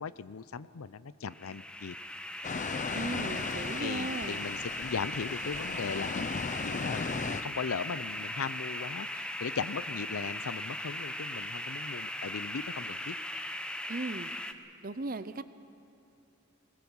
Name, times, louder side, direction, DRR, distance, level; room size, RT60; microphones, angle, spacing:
voice 1, 0.0-1.9 2.9-3.2 3.8-7.0 7.4-13.1, left 5 dB, 85° left, 17 dB, 0.6 m, -38 dB
sound 1, 1.3-14.5, left 1 dB, 5° left, 0.7 m, -38 dB
sound 2, 2.4-7.4, left 4 dB, 35° left, 0.5 m, -37 dB
voice 2, 2.9-4.4 13.9-14.3 14.8-15.4, right 2 dB, 45° right, 13 dB, 0.7 m, -37 dB
21.0 x 19.5 x 7.2 m, 2.8 s
head